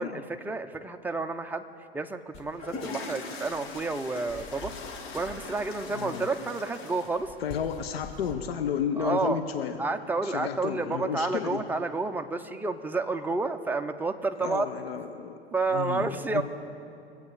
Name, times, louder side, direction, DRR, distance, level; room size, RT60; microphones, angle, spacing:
voice 1, 0.0-1.6 1.9-4.7 5.1-7.3 9.0-9.4 9.8-14.7 15.5-16.4, right 3 dB, 5° right, 6 dB, 0.7 m, -30 dB
sound 1, 2.3-8.3, left 3 dB, 40° left, 1.9 m, -41 dB
voice 2, 5.9-6.2 7.4-9.8 10.2-11.6 14.4-15.4 15.7-16.4, left 8 dB, 70° left, 7 dB, 0.8 m, -32 dB
23.5 x 8.2 x 4.9 m, 2.6 s
figure-of-eight pair, 90°, 31 cm